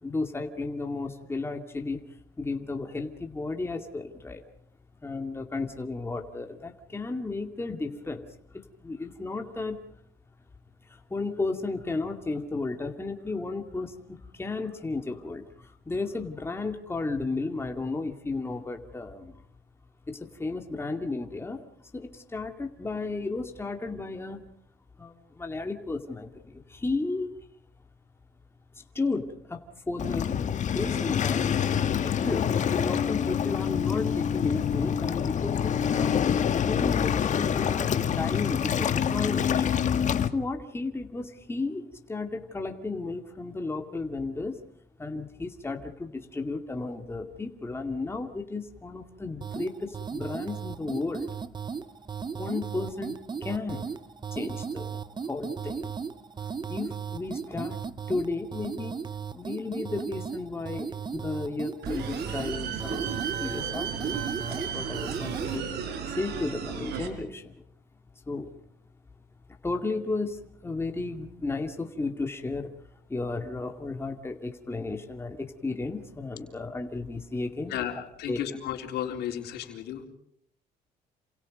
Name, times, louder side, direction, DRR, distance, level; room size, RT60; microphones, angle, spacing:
voice 1, 0.0-2.0 2.4-4.4 5.0-8.3 8.5-9.8 10.9-19.4 20.1-21.7 21.9-24.5 25.0-27.3 28.7-30.3 30.7-31.4 32.0-36.2 36.6-39.7 40.3-44.6 45.0-51.3 52.4-53.9 54.3-55.0 55.2-56.0 56.7-57.8 58.1-58.9 59.3-65.7 66.1-67.5 68.3-68.5 69.6-72.7 73.1-77.8 78.3-78.4, left 3 dB, 15° left, 4 dB, 2.3 m, -34 dB
Waves surf, 30.0-40.3, left 8 dB, 45° left, 1.5 m, -26 dB
sound 1, 49.4-65.6, right 6 dB, 25° right, 0.9 m, -36 dB
sound 2, 61.8-67.1, right 7 dB, 80° right, 4.6 m, -34 dB
voice 2, 77.7-80.0, left 10 dB, 75° left, 3 dB, 3.9 m, -34 dB
28.5 x 27.0 x 5.3 m, 0.68 s
cardioid pair, 110°, 17 cm